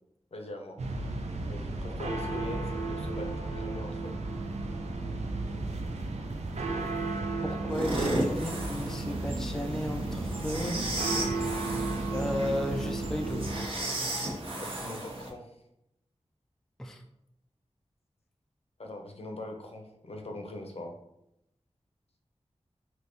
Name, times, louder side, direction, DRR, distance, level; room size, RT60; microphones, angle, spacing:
voice 1, 0.3-0.8 1.5-4.1 14.6-15.6 18.8-20.9, left 1 dB, 65° left, 2 dB, 0.6 m, -41 dB
sound 1, 0.8-13.7, right 2 dB, 80° right, 0.4 m, -34 dB
voice 2, 7.4-10.8 12.1-13.5 16.8-17.0, left 1 dB, 5° left, 4 dB, 0.3 m, -34 dB
sound 2, 7.7-15.3, right 1 dB, 55° right, 0.8 m, -35 dB
3.4 x 2.7 x 2.6 m, 0.82 s
wide cardioid pair, 75°, 11 cm